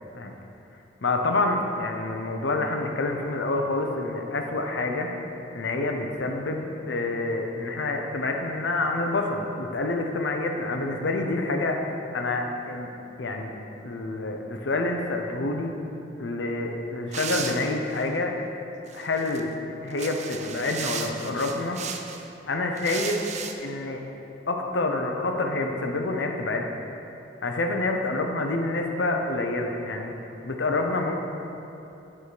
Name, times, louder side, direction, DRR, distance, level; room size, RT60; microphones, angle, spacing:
voice 1, 1.0-5.1 5.5-11.8 12.1-12.9 13.2-13.5 13.8-15.7 16.2-18.3 18.9-19.5 19.8-21.8 22.5-23.2 23.6-24.0 24.5-26.7 27.4-30.1 30.4-31.2, left 2 dB, 75° left, 3 dB, 0.7 m, -27 dB
sound 1, 17.1-18.1 18.9-19.4 19.9-22.2 22.8-23.5, right 7 dB, 40° right, 0.4 m, -35 dB
8.2 x 4.9 x 4.7 m, 2.9 s
head